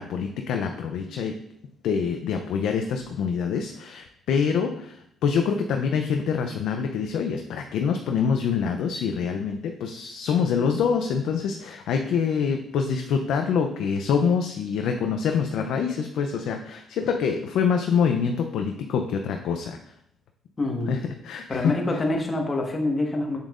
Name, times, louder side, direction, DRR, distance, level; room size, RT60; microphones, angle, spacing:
voice 1, 0.0-1.4 1.8-19.8 20.9-21.7, left 6 dB, 80° left, 4 dB, 0.5 m, -25 dB
voice 2, 20.6-20.9 21.5-23.4, left 2 dB, 30° left, 1 dB, 1.4 m, -26 dB
7.2 x 7.2 x 2.5 m, 0.73 s
cardioid pair, 90°, 0 cm